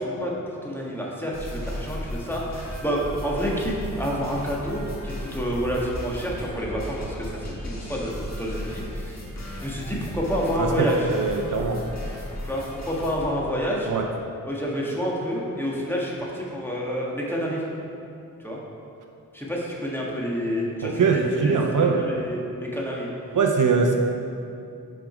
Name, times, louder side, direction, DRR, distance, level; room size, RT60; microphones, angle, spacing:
voice 1, 0.0-9.2 9.6-11.1 12.4-13.9 14.5-17.6 18.4-18.6 19.3-23.1, equal, 5° left, -4 dB, 1.6 m, -29 dB
sound 1, 1.3-13.3, equal, 50° left, 1.5 m, -35 dB
voice 2, 10.6-11.8 13.9-14.1 20.8-22.0 23.3-24.0, right 5 dB, 60° right, 2 dB, 0.7 m, -22 dB
6.2 x 5.0 x 5.1 m, 2.6 s
cardioid pair, 55°, 35 cm